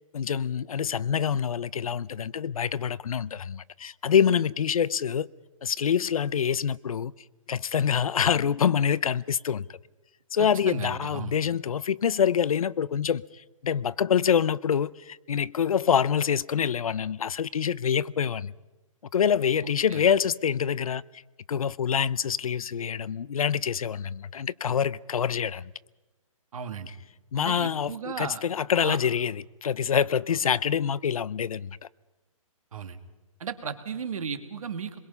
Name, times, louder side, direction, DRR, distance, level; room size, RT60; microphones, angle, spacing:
voice 1, 0.1-5.3 5.6-7.1 7.5-9.8 10.3-18.5 19.1-21.0 21.5-25.7 26.9-27.0 27.3-31.8, left 8 dB, 90° left, 0.6 m, -26 dB
voice 2, 10.4-11.4 19.6-20.0 26.5-26.9 27.4-28.4 28.8-29.0 32.7-33.0 33.4-35.0, right 6 dB, 75° right, 2.1 m, -35 dB
23.0 x 22.0 x 5.5 m
hypercardioid pair, 155°, 18 cm